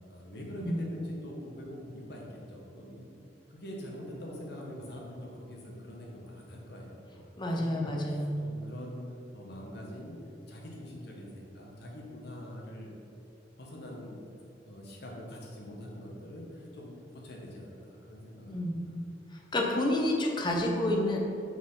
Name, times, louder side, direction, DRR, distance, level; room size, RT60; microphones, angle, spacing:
voice 1, 0.1-3.1 3.5-9.0 9.3-10.2 10.5-12.9 13.6-14.2 14.6-18.8, equal, 60° left, -2 dB, 1.5 m, -44 dB
voice 2, 7.4-8.3 18.4-18.7 19.5-21.2, left 1 dB, 25° left, 0 dB, 0.9 m, -29 dB
6.5 x 4.7 x 5.7 m, 2.7 s
head